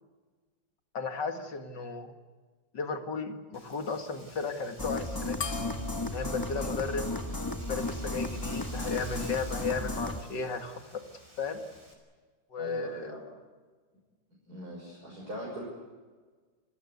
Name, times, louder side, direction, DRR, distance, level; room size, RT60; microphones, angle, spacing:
voice 1, 0.9-2.1 2.7-5.5 6.0-7.1 7.7-11.0 11.4-11.6 12.5-13.1, left 4 dB, 70° left, 6 dB, 2.7 m, -35 dB
Wind, 3.5-11.9, right 1 dB, 25° right, 5.0 m, -51 dB
sound 1, 4.8-10.2, left 2 dB, 15° left, 1.2 m, -34 dB
sound 2, 5.4-8.2, left 5 dB, 45° left, 2.2 m, -42 dB
voice 2, 12.6-13.2 14.5-15.6, equal, 55° right, -4 dB, 6.7 m, -41 dB
29.0 x 17.0 x 8.4 m, 1.4 s
omnidirectional pair, 2.0 m